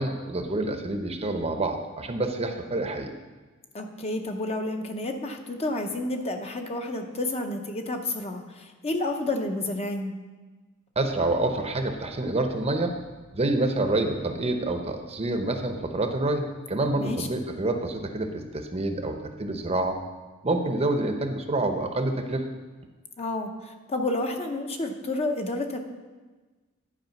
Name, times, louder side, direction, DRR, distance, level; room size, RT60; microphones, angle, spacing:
voice 1, 0.0-3.1 11.0-13.0 13.3-20.0 20.4-22.4, right 2 dB, 30° right, 6 dB, 0.7 m, -27 dB
voice 2, 3.7-10.1 16.9-17.3 23.2-25.8, left 2 dB, 30° left, 4 dB, 0.7 m, -30 dB
11.0 x 4.8 x 5.7 m, 1.3 s
head